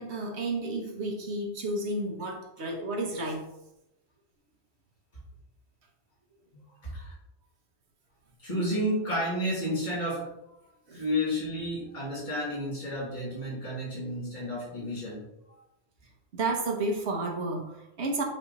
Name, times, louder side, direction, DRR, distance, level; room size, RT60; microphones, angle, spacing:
voice 1, 0.0-3.4 10.9-11.0 16.3-18.2, right 2 dB, 85° right, 3 dB, 1.4 m, -31 dB
voice 2, 6.8-7.1 8.4-10.3 10.9-15.2, equal, 45° left, -8 dB, 2.6 m, -31 dB
7.7 x 3.5 x 4.1 m, 0.85 s
omnidirectional pair, 1.1 m